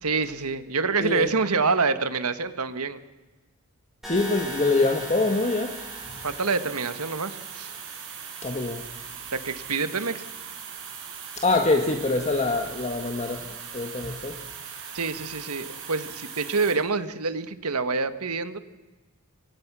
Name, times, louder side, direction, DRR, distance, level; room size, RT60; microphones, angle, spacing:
voice 1, 0.0-3.0 6.2-7.7 9.3-10.2 14.9-18.6, right 4 dB, 85° right, 11 dB, 1.6 m, -27 dB
voice 2, 4.0-5.7 8.4-8.8 11.4-13.5 13.7-14.4, left 3 dB, 30° left, 4 dB, 1.7 m, -24 dB
sound 1, 4.0-8.0, left 2 dB, ahead, 7.9 m, -41 dB
sound 2, 4.1-16.7, right 7 dB, 60° right, 6.3 m, -40 dB
28.0 x 24.0 x 6.2 m, 1.2 s
head